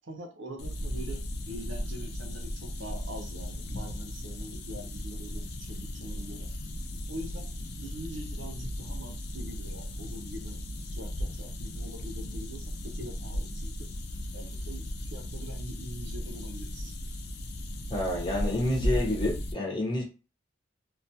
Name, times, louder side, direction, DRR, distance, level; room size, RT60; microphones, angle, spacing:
voice 1, 0.0-6.5 7.1-7.5 7.8-10.6 10.9-13.9 14.3-16.9, equal, 70° right, 0.6 m, -43 dB
sound 1, 0.6-19.5, equal, 50° left, 0.4 m, -36 dB
voice 2, 17.9-20.0, left 1 dB, 25° left, 0.8 m, -29 dB
2.3 x 2.2 x 2.7 m
head